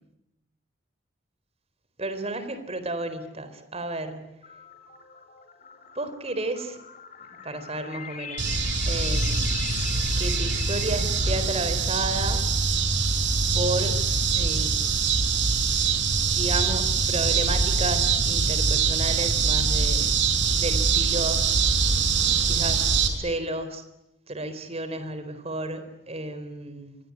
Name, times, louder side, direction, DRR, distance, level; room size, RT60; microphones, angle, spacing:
voice 1, 2.0-4.3 6.0-6.8 7.4-8.5 8.9-9.5 10.2-12.4 13.5-14.0 14.3-14.9 16.3-20.1 20.5-21.4 22.5-23.8 24.3-27.0, right 2 dB, 35° right, 11 dB, 4.1 m, -32 dB
sound 1, 4.4-12.6, left 6 dB, 40° left, 5.1 m, -40 dB
sound 2, 8.4-23.1, right 5 dB, 75° right, 5.3 m, -23 dB
26.5 x 23.0 x 9.8 m, 0.85 s
head